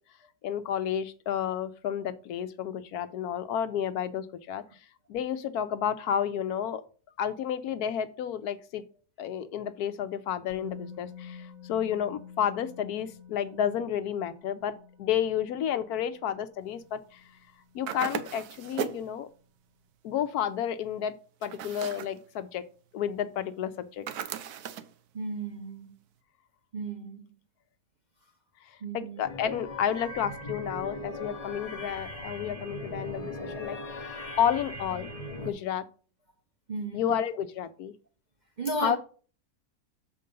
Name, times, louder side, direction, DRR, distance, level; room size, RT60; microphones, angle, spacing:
voice 1, 0.4-4.6 5.1-6.8 7.2-8.8 9.2-14.7 15.0-17.2 17.7-19.3 20.0-21.1 21.4-22.6 22.9-24.1 28.9-35.1 35.4-35.8 36.9-37.9 38.8-39.0, left 9 dB, 75° left, 1.1 m, -31 dB
Musical instrument, 10.5-18.4 18.7-18.8, left 7 dB, 60° right, 1.4 m, -50 dB
sound 1, 17.9-19.1 21.4-22.2 24.1-24.9, right 8 dB, 75° right, 1.2 m, -36 dB
voice 2, 25.1-25.9 26.7-27.2 28.8-29.2 36.7-37.0 38.6-39.0, right 2 dB, 45° right, 0.6 m, -34 dB
sound 2, 29.2-35.5, left 1 dB, 30° left, 0.7 m, -39 dB
6.6 x 4.6 x 5.2 m
omnidirectional pair, 1.7 m